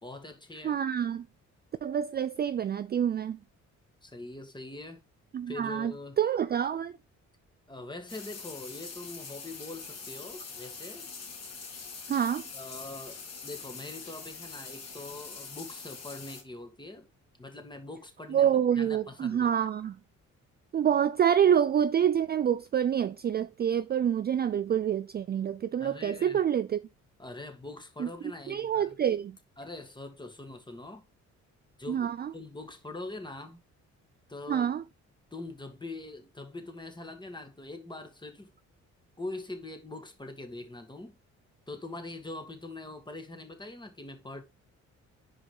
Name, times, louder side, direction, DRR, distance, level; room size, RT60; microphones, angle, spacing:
voice 1, 0.0-0.8 4.0-5.0 5.5-6.2 7.7-11.1 12.5-17.1 17.4-19.5 25.8-26.4 27.2-29.0 29.6-31.0 31.8-33.6 34.3-34.7 35.3-38.5 39.2-41.2 41.7-44.4, left 2 dB, 15° left, 1.8 m, -43 dB
voice 2, 0.6-1.3 1.8-3.4 5.3-6.9 12.1-12.4 18.3-19.9 20.7-26.8 28.0-28.1 28.5-29.4 31.9-32.3 34.5-34.8, right 9 dB, 35° right, 0.4 m, -27 dB
sound 1, 8.1-16.4, left 5 dB, 55° left, 3.0 m, -44 dB
5.0 x 4.8 x 4.9 m
cardioid pair, 90°, 30 cm